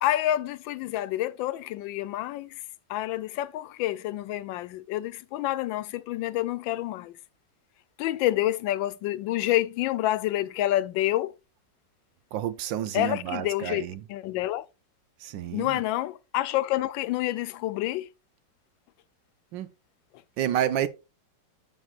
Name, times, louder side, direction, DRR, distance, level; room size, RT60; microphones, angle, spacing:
voice 1, 0.0-2.6 2.9-7.2 8.0-11.3 12.9-14.7 15.5-18.1, left 14 dB, 85° left, 1.3 m, -28 dB
voice 2, 12.3-14.0 15.2-15.8 19.5-19.7 20.4-20.9, right 10 dB, 80° right, 1.4 m, -29 dB
10.5 x 6.3 x 2.4 m
omnidirectional pair, 2.0 m